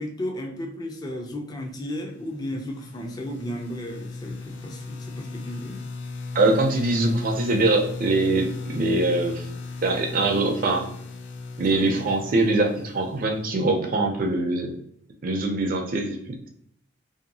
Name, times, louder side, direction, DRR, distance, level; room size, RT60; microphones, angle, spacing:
voice 1, 0.0-5.8 11.7-12.1, left 1 dB, 20° left, 2 dB, 0.4 m, -34 dB
sound 1, 2.2-14.0, left 3 dB, 85° left, 0.4 m, -37 dB
voice 2, 6.3-9.4 9.8-10.9 11.6-14.8 15.2-16.5, right 2 dB, 50° right, 3 dB, 0.4 m, -23 dB
2.7 x 2.2 x 2.6 m, 0.67 s
head